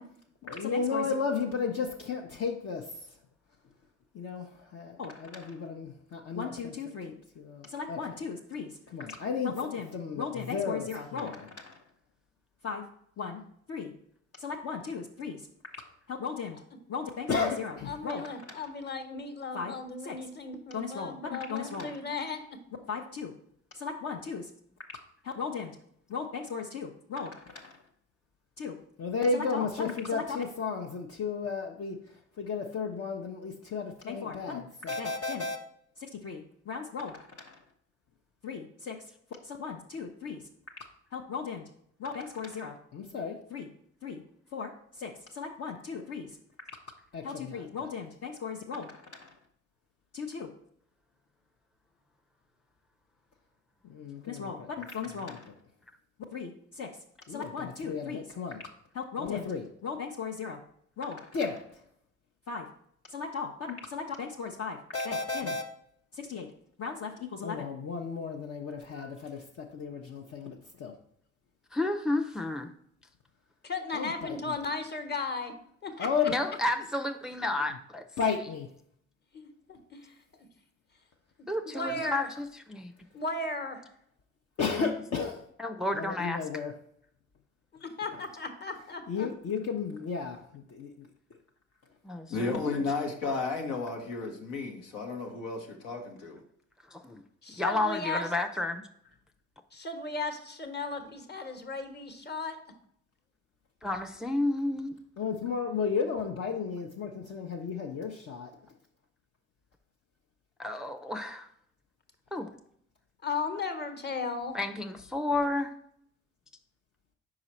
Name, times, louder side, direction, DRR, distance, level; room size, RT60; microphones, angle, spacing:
voice 1, 0.4-2.9 4.1-11.8 12.6-12.8 13.2-13.4 13.7-13.9 14.4-15.4 16.1-16.6 16.9-18.3 18.5-18.6 19.5-19.7 20.0-20.2 20.7-21.9 22.9-23.3 23.7-24.5 25.2-25.8 26.1-27.8 28.6-32.0 32.4-35.6 36.0-37.6 38.4-39.0 39.4-40.4 41.1-41.6 42.0-43.7 44.0-44.2 44.5-44.7 45.0-46.3 47.1-49.3 50.1-50.5 53.9-55.5 56.3-56.9 57.3-58.6 58.9-60.6 61.0-61.6 62.5-62.7 63.1-65.6 66.1-66.5 66.8-70.9 73.9-74.5 76.0-76.4 78.2-78.7 84.6-85.4 85.9-86.7 89.1-91.1 105.2-108.5, left 5 dB, 50° left, 0.7 m, -34 dB
voice 2, 17.9-22.6 73.6-75.5 75.8-76.1 79.3-80.5 81.6-82.3 83.1-83.8 87.7-89.3 97.4-98.3 99.7-102.6 113.2-114.6, left 3 dB, 30° left, 1.1 m, -36 dB
voice 3, 71.7-72.7 76.3-78.0 81.5-82.9 84.8-84.9 85.6-86.4 92.0-92.8 96.9-97.2 97.6-98.8 103.8-105.0 110.6-111.5 112.3-112.5 114.5-115.7, left 2 dB, ahead, 0.5 m, -31 dB
voice 4, 92.3-96.4, left 3 dB, 80° left, 1.0 m, -33 dB
4.9 x 4.8 x 4.2 m
hypercardioid pair, 45°, 33 cm